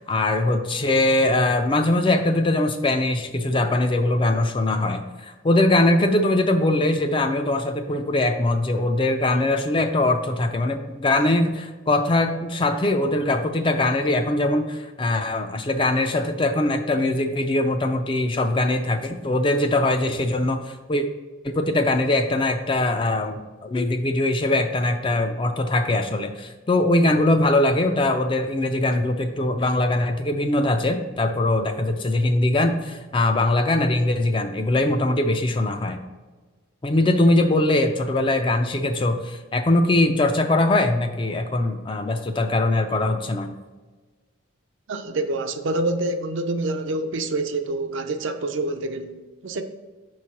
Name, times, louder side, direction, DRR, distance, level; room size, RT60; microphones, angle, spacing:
voice 1, 0.0-21.1 21.4-36.0 36.8-43.5, left 2 dB, 25° left, 0.4 m, -22 dB
voice 2, 44.9-49.6, right 2 dB, 70° right, 0.5 m, -27 dB
5.9 x 3.1 x 5.7 m
head